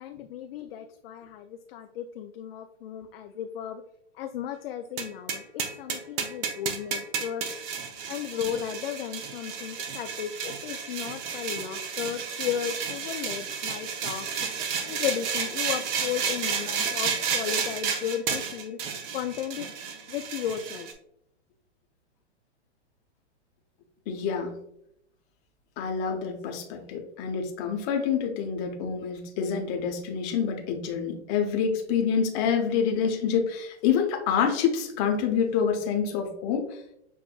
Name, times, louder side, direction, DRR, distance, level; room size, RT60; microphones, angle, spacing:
voice 1, 0.0-3.8 4.2-7.4 8.1-14.3 14.8-18.8 19.1-19.7 20.1-20.9, left 9 dB, 55° left, 6 dB, 0.4 m, -34 dB
sound 1, 5.0-20.9, right 6 dB, 35° right, 0.6 m, -32 dB
voice 2, 24.1-24.6 25.8-36.7, left 7 dB, 35° left, 3 dB, 0.9 m, -27 dB
6.9 x 2.5 x 2.3 m, 0.74 s
hypercardioid pair, 120°, 35 cm